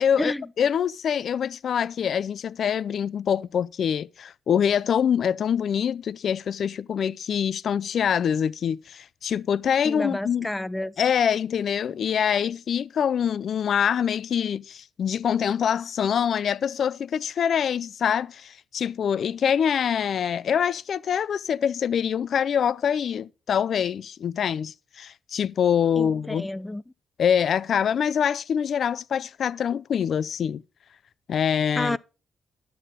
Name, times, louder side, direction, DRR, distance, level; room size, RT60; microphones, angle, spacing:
voice 1, 0.0-10.5 11.0-26.4 27.2-30.6 31.3-32.0, left 8 dB, 65° left, 0.4 m, -25 dB
voice 2, 9.8-10.9 26.0-26.8 31.8-32.0, left 1 dB, 10° left, 0.5 m, -29 dB
12.0 x 8.2 x 3.8 m
cardioid pair, 95°, 0 cm